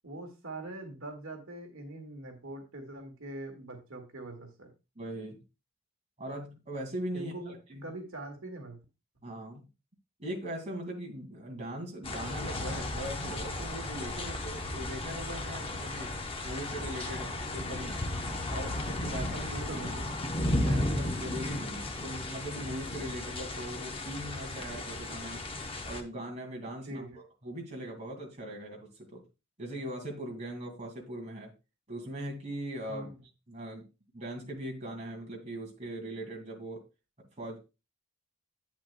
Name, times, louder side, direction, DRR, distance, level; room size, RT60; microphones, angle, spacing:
voice 1, 0.0-4.7 7.1-7.5 7.8-8.8 17.0-17.3 19.5-20.0 26.8-27.2 32.9-33.1, right 2 dB, 65° right, 3 dB, 1.8 m, -42 dB
voice 2, 5.0-5.4 6.2-7.3 7.7-7.9 9.2-9.6 10.2-16.1 16.4-18.1 18.5-19.7 20.6-25.5 25.8-29.2 29.6-31.5 31.9-33.1 33.5-33.8 34.1-36.8 37.4-37.6, right 1 dB, 30° right, 0 dB, 2.2 m, -40 dB
sound 1, 12.0-26.0, left 1 dB, 25° left, 0.8 m, -35 dB
10.5 x 8.3 x 2.2 m, 0.28 s
head